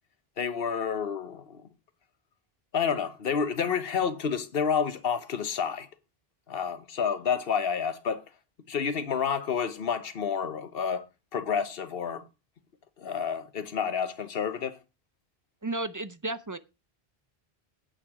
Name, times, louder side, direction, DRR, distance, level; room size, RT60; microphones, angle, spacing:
voice 1, 0.4-1.6 2.7-5.9 6.5-8.2 8.7-11.0 11.3-12.2 13.0-14.8, left 6 dB, 65° left, 1.2 m, -29 dB
voice 2, 15.6-16.6, right 2 dB, 25° right, 0.4 m, -33 dB
8.9 x 8.6 x 4.8 m
omnidirectional pair, 1.1 m